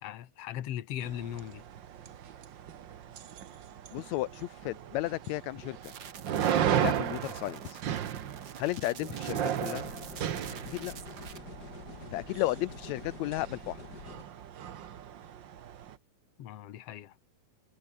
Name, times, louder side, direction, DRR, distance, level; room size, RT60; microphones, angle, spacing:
voice 1, 0.0-1.6 16.4-17.2, left 11 dB, 60° left, 2.0 m, -39 dB
sound 1, 1.0-16.0, right 9 dB, 75° right, 1.0 m, -36 dB
voice 2, 3.9-5.9 6.8-7.8 8.6-9.9 10.7-10.9 12.1-13.8, left 17 dB, 80° left, 1.6 m, -34 dB
sound 2, 5.8-11.4, right 7 dB, 50° right, 1.2 m, -48 dB
sound 3, 9.8-14.2, left 3 dB, 30° left, 5.1 m, -47 dB
omnidirectional pair, 3.9 m